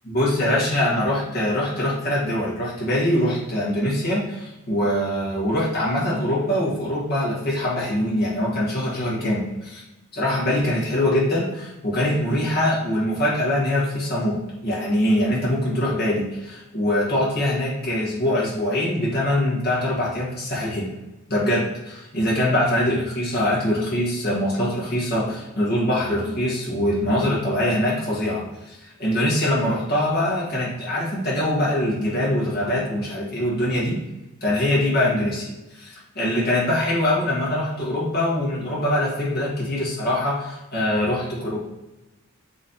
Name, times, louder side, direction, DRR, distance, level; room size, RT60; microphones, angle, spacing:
voice 1, 0.0-9.8 10.1-20.9 21.3-34.0 34.4-41.6, left 1 dB, 45° left, -6 dB, 1.4 m, -23 dB
4.0 x 3.1 x 4.0 m, 1.0 s
head